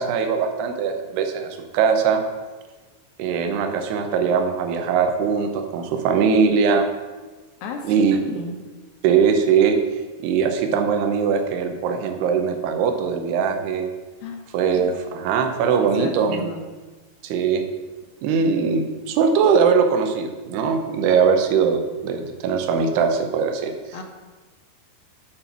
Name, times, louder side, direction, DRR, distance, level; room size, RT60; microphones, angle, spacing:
voice 1, 0.0-2.2 3.2-6.9 7.8-8.3 9.0-9.8 10.2-13.9 14.5-16.4 17.2-17.7 18.2-23.7, right 6 dB, 75° right, 6 dB, 2.7 m, -21 dB
voice 2, 7.6-8.6 14.2-14.4 15.8-16.6 23.9-24.0, left 3 dB, 70° left, 3 dB, 2.4 m, -33 dB
9.9 x 4.4 x 7.3 m, 1.3 s
omnidirectional pair, 5.2 m